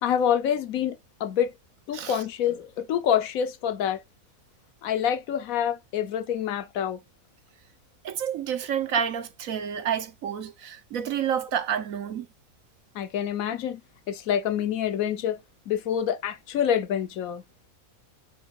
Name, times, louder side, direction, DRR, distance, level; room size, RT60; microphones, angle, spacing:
voice 1, 0.0-1.5 1.9-4.0 4.8-7.0 12.9-13.8 14.1-15.4 15.7-17.4, left 9 dB, 80° left, 1.3 m, -26 dB
voice 2, 8.0-12.3, right 8 dB, 75° right, 1.3 m, -29 dB
9.0 x 3.4 x 4.6 m
omnidirectional pair, 1.4 m